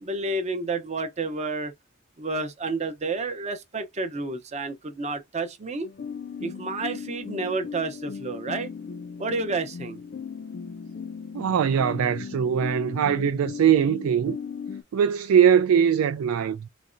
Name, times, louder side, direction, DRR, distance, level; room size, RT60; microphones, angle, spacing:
voice 1, 0.0-1.7 2.2-5.9 6.4-8.7 9.2-10.0, right 3 dB, 30° right, 0.6 m, -30 dB
sound 1, 5.8-14.8, left 6 dB, 50° left, 0.3 m, -37 dB
voice 2, 11.3-14.4 14.9-16.7, right 8 dB, 85° right, 0.3 m, -21 dB
4.0 x 2.1 x 2.5 m
head